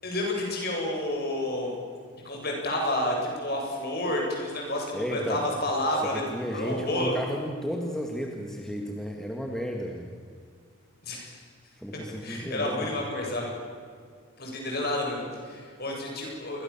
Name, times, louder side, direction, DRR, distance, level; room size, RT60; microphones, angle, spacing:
voice 1, 0.0-1.7 2.2-6.2 6.5-7.2 11.0-11.4 12.2-13.5 14.4-16.6, left 1 dB, 45° left, 0 dB, 7.9 m, -30 dB
voice 2, 4.9-5.5 6.0-10.1 11.8-13.1, equal, ahead, 1 dB, 2.0 m, -33 dB
28.5 x 23.5 x 7.4 m, 2.1 s
head